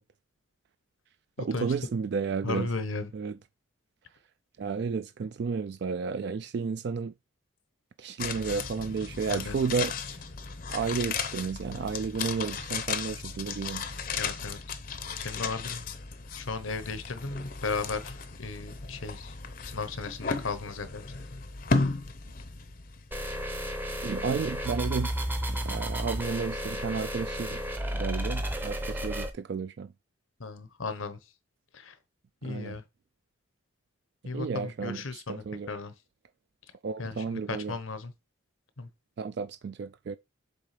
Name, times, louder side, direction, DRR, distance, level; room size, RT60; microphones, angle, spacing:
voice 1, 1.4-2.7 3.1-3.4 4.6-7.1 8.0-9.9 10.7-13.8 24.0-25.1 25.5-27.6 27.9-29.9 32.4-32.8 34.3-35.7 36.8-37.8 39.2-40.2, right 5 dB, 55° right, 0.3 m, -32 dB
voice 2, 2.4-3.1 9.3-9.5 14.2-14.6 15.2-15.8 16.4-19.3 19.6-21.0 30.4-31.2 31.7-31.9 32.4-32.8 34.2-35.9 37.0-38.1 38.8-38.9, left 4 dB, 80° left, 1.0 m, -35 dB
sound 1, 8.2-23.4 23.6-23.7, left 4 dB, 45° left, 0.7 m, -35 dB
sound 2, 23.1-29.3, equal, 10° right, 0.7 m, -32 dB
7.0 x 3.7 x 5.0 m
head